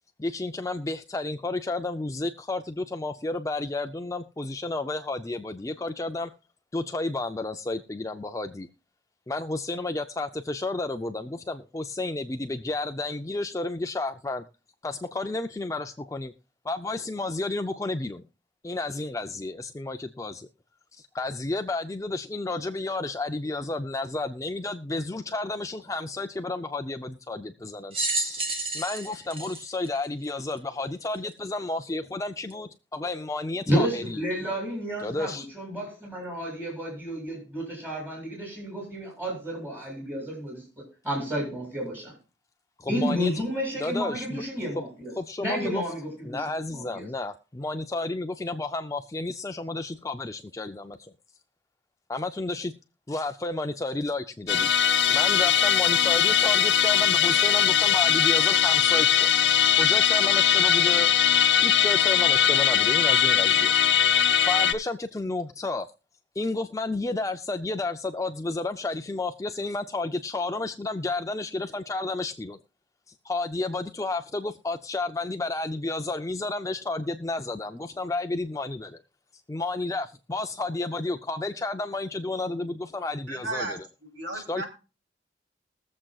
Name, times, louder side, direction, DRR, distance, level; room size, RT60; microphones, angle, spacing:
voice 1, 0.2-6.3 6.7-8.7 9.3-14.4 14.8-16.3 16.6-18.2 18.6-20.5 20.9-28.0 28.2-34.2 35.0-35.5 42.8-43.3 43.8-44.4 44.7-44.8 45.1-45.8 46.2-51.1 52.1-52.7 53.1-54.7 55.1-59.3 59.7-61.1 61.6-63.7 64.0-65.9 66.4-72.6 73.2-79.0 79.5-83.8 84.3-84.6, left 2 dB, 15° left, 0.4 m, -31 dB
sound 1, 27.9-30.6 31.3-31.4 32.5-32.6, right 2 dB, 30° right, 1.6 m, -31 dB
voice 2, 33.7-40.6 41.0-42.1 42.9-45.1 45.4-47.1, equal, 10° right, 6.7 m, -31 dB
Musical instrument, 54.5-64.7, left 9 dB, 65° left, 0.7 m, -21 dB
voice 3, 83.3-84.7, right 2 dB, 75° right, 3.0 m, -34 dB
22.0 x 7.4 x 2.3 m
head